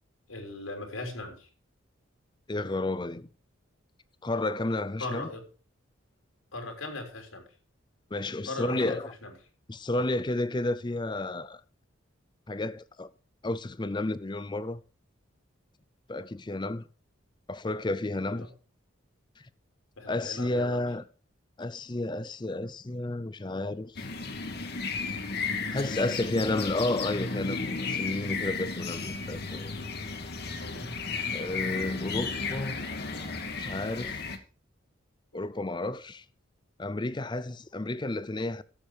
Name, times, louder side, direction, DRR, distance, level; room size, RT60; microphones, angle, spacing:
voice 1, 0.3-1.5 5.0-5.4 6.5-7.4 8.5-9.3 18.2-18.5 20.0-20.8 30.6-30.9, left 2 dB, 80° left, 3.5 m, -38 dB
voice 2, 2.5-3.3 4.2-5.3 8.1-9.1 9.7-11.6 12.5-13.1 13.4-14.8 16.1-16.9 17.5-18.5 20.1-21.0 21.6-24.0 25.7-29.7 31.3-32.8 33.6-34.3 35.3-36.2 36.8-38.6, left 2 dB, 20° left, 0.5 m, -31 dB
sound 1, 24.0-34.4, left 4 dB, 50° left, 1.3 m, -34 dB
13.5 x 7.4 x 4.9 m
head